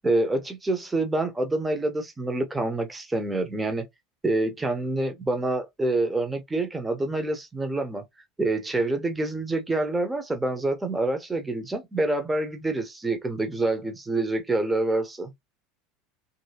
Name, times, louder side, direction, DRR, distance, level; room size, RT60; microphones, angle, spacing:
voice 1, 0.0-3.9 4.2-8.0 8.4-15.3, right 2 dB, 10° right, 0.8 m, -27 dB
3.0 x 2.7 x 2.8 m
figure-of-eight pair, 75°, 0 cm